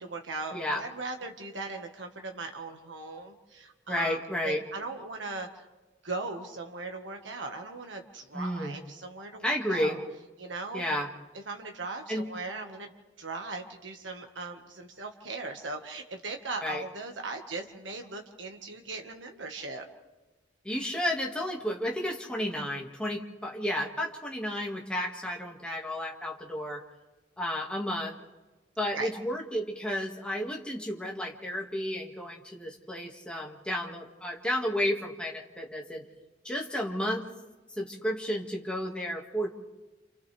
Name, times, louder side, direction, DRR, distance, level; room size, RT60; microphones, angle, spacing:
voice 1, 0.0-5.7 6.0-10.0 10.4-10.8 11.5-12.9 13.2-19.8 28.9-29.1, right 3 dB, 75° right, 3 dB, 1.6 m, -39 dB
voice 2, 0.5-0.8 3.9-4.6 8.3-8.8 9.4-10.0 10.7-11.1 12.1-12.3 16.6-16.8 20.6-26.8 27.4-28.2 28.8-36.0 36.4-37.3 37.8-39.5, equal, 5° left, -1 dB, 2.0 m, -32 dB
28.5 x 28.5 x 3.4 m, 1.1 s
head